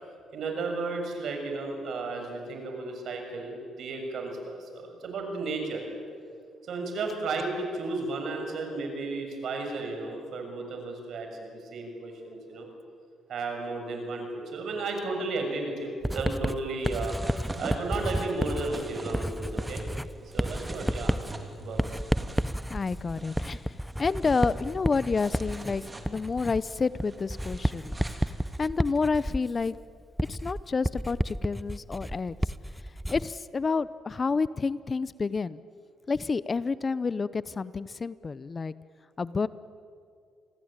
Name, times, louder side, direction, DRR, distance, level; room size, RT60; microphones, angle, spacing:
voice 1, 0.3-5.8 6.6-12.7 13.3-17.1 17.6-19.9 20.3-22.0, right 3 dB, 65° right, 4 dB, 6.7 m, -34 dB
Writing, 16.0-33.4, equal, ahead, 0.6 m, -31 dB
sound 1, 16.8-28.7, right 2 dB, 20° right, 3.0 m, -43 dB
voice 2, 22.7-28.0 28.6-29.8 30.3-32.4 33.1-35.6 36.1-38.7 39.2-39.5, left 4 dB, 35° left, 17 dB, 0.7 m, -29 dB
28.0 x 20.5 x 9.0 m, 2.3 s
cardioid pair, 90°, 0 cm